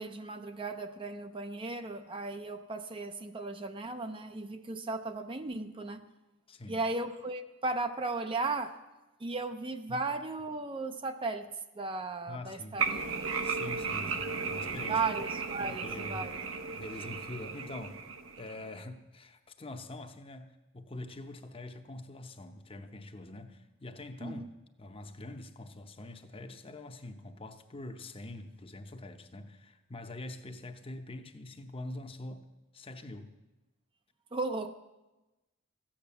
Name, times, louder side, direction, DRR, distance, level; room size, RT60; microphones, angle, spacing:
voice 1, 0.0-6.0 6.7-8.8 9.2-11.5 11.8-13.0 14.9-16.4 24.2-24.5 34.3-34.7, right 3 dB, 25° right, 0.5 m, -36 dB
voice 2, 6.5-6.8 9.9-10.0 12.3-12.8 13.4-15.0 15.6-16.3 16.7-18.0 18.4-24.5 24.8-32.5 32.7-33.3, left 2 dB, 25° left, 0.8 m, -44 dB
sound 1, 12.8-18.8, right 5 dB, 75° right, 0.9 m, -35 dB
14.5 x 8.7 x 6.9 m
head